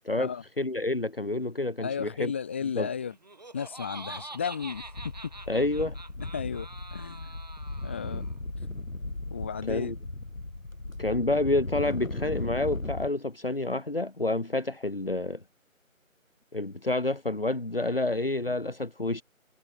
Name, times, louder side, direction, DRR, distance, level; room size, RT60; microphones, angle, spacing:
voice 1, 0.6-2.3 2.7-2.9 5.5-6.0 9.6-9.9 11.0-15.4 16.5-19.2, left 2 dB, 40° left, 1.6 m, -28 dB
voice 2, 1.8-3.1 3.5-4.8 6.3-7.3 7.8-8.2 9.3-9.9, left 7 dB, 10° left, 5.4 m, -34 dB
Laughter, 3.1-8.3, right 2 dB, 30° right, 4.8 m, -45 dB
sound 1, 4.3-4.4 4.6-13.1, left 2 dB, 70° left, 4.3 m, -37 dB
figure-of-eight pair, 175°, 42 cm